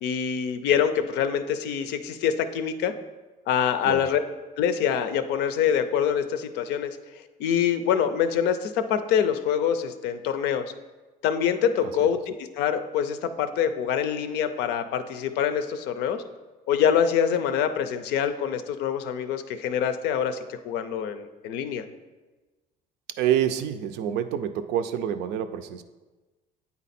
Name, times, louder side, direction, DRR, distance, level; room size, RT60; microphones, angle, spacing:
voice 1, 0.0-2.9 3.5-4.2 4.6-6.9 7.4-10.6 11.2-16.2 16.7-21.8, left 8 dB, 90° left, 10 dB, 0.5 m, -25 dB
voice 2, 23.2-25.8, right 10 dB, 90° right, 9 dB, 0.5 m, -27 dB
8.6 x 4.1 x 4.2 m, 1.2 s
cardioid pair, 110°, 17 cm